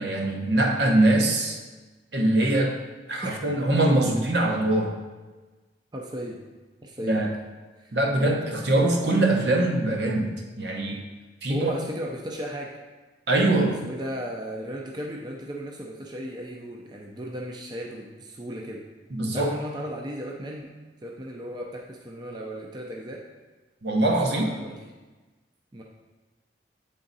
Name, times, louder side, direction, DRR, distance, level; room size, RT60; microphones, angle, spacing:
voice 1, 0.0-1.6 2.1-2.7 3.1-4.9 7.0-7.3 7.9-11.0 11.4-11.7 13.3-13.8 19.1-19.5 23.8-24.5, right 1 dB, 70° right, 1 dB, 0.9 m, -23 dB
voice 2, 5.9-6.4 6.8-7.3 7.8-7.9 11.5-12.8 13.5-18.8 19.3-20.7 21.0-23.2 24.3-24.8 25.7-25.8, equal, 25° right, -1 dB, 0.5 m, -35 dB
8.2 x 3.8 x 4.0 m, 1.3 s
head